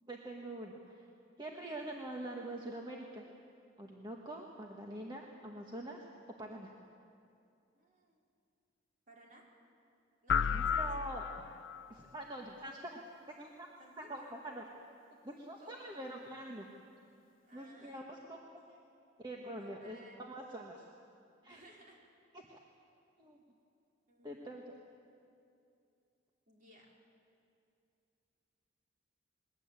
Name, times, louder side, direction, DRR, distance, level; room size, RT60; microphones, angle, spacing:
voice 1, 0.1-1.1 1.4-3.2 3.8-6.0 6.4-6.7 10.5-11.2 11.9-13.0 13.4-13.7 14.0-14.6 15.2-16.7 17.5-18.4 19.2-20.8 21.4-21.6 22.3-22.6 23.2-23.4 24.2-24.8, right 1 dB, 20° right, 0 dB, 1.5 m, -45 dB
voice 2, 7.7-8.2 9.1-9.4 10.2-10.9 13.8-14.3 15.6-15.9 17.5-18.3 19.5-20.8 21.5-22.0 24.1-24.7 26.5-26.9, right 1 dB, 45° right, -2 dB, 4.6 m, -60 dB
sound 1, 10.3-11.9, left 7 dB, 80° left, 0.5 m, -33 dB
22.0 x 19.5 x 9.1 m, 2.5 s
head